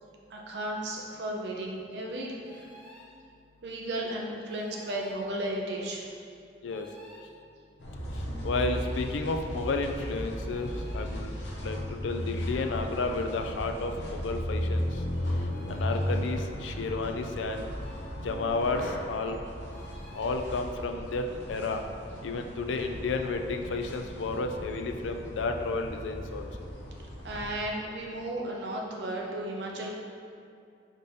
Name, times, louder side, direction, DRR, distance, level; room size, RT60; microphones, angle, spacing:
voice 1, 0.3-2.7 3.6-6.1 27.2-29.9, right 1 dB, 70° right, -1 dB, 0.7 m, -34 dB
sound 1, 2.4-3.1 4.5-5.2 6.7-7.3 8.6-9.2 10.5-11.1 13.1-13.5 15.5-16.1 17.8-18.1 19.7-20.4, left 1 dB, 5° left, 0.6 m, -53 dB
sound 2, 7.8-27.5, equal, 70° left, 0.8 m, -36 dB
voice 2, 8.4-11.3 11.6-11.8 12.0-14.8 15.7-17.7 18.2-19.4 20.1-21.8 22.2-26.5, left 3 dB, 90° left, 5 dB, 0.4 m, -32 dB
sound 3, 12.0-20.7, equal, 10° right, 1.3 m, -57 dB
5.2 x 3.7 x 2.7 m, 2.4 s
head